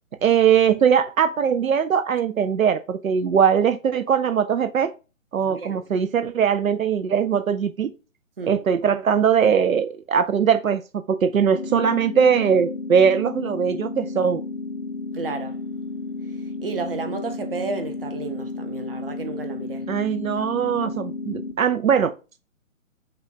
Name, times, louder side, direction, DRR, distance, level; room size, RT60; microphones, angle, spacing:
voice 1, 0.2-4.9 5.3-7.9 8.4-14.4 19.9-22.1, right 7 dB, 80° right, 0.5 m, -20 dB
sound 1, 11.5-21.5, left 3 dB, 35° left, 0.5 m, -33 dB
voice 2, 15.1-15.6 16.6-19.9, right 4 dB, 45° right, 0.8 m, -32 dB
5.5 x 2.3 x 3.9 m
figure-of-eight pair, 140°, 40 cm